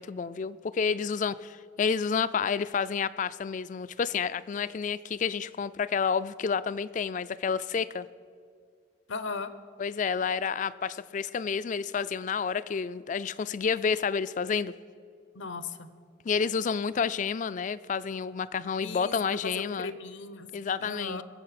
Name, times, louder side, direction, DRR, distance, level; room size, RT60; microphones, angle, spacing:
voice 1, 0.0-8.1 9.8-14.7 16.2-19.9 20.5-21.2, left 6 dB, 40° left, 16 dB, 0.3 m, -30 dB
voice 2, 9.1-9.5 15.3-15.9 18.8-21.2, left 4 dB, 75° left, 12 dB, 0.8 m, -37 dB
21.0 x 7.5 x 5.9 m, 2.2 s
head